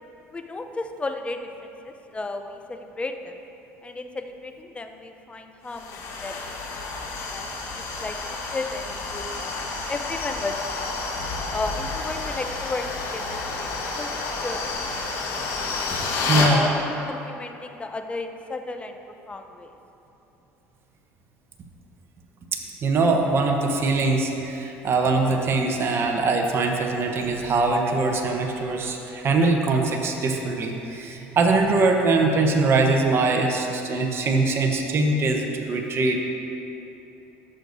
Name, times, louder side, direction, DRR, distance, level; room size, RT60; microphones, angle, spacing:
voice 1, 0.3-3.4 3.8-11.0 11.5-12.9 13.1-13.7 14.0-14.1 14.4-15.0 15.5-15.9 16.5-19.0 19.3-19.8, left 2 dB, 20° left, 6 dB, 0.6 m, -34 dB
sound 1, 5.7-16.5, left 3 dB, 60° left, 1.4 m, -30 dB
voice 2, 16.3-16.6 22.5-36.2, right 3 dB, 45° right, 2 dB, 0.9 m, -22 dB
13.0 x 6.6 x 2.7 m, 3.0 s
supercardioid pair, 85°, 6 cm